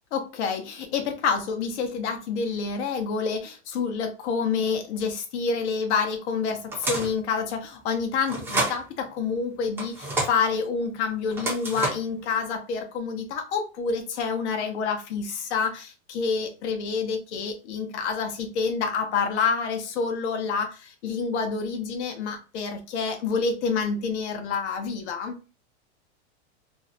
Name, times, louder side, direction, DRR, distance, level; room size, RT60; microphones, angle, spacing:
voice 1, 0.1-25.4, left 5 dB, 75° left, 5 dB, 0.8 m, -28 dB
sound 1, 6.7-7.2 8.3-8.8 9.8-10.4 11.3-12.1, right 2 dB, 5° right, 0.5 m, -28 dB
2.6 x 2.1 x 2.6 m, 0.33 s
supercardioid pair, 150°, 35 cm